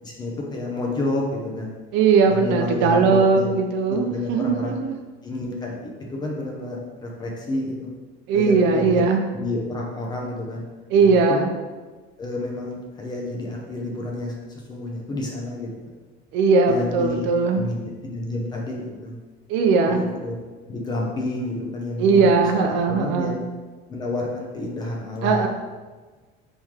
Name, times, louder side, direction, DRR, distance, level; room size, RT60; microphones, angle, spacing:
voice 1, 0.0-1.7 2.3-3.5 3.9-4.8 5.2-7.9 8.3-8.9 9.3-10.6 11.0-11.4 12.2-15.9 16.7-17.2 17.5-19.2 19.9-20.3 20.7-23.4 23.9-25.5, left 2 dB, 20° left, -2 dB, 0.5 m, -30 dB
voice 2, 1.9-4.9 8.3-9.2 10.9-11.5 16.3-17.6 19.5-20.0 22.0-23.4 25.2-25.5, right 4 dB, 65° right, 4 dB, 0.4 m, -19 dB
3.1 x 3.0 x 3.6 m, 1.3 s
cardioid pair, 160°, 20 cm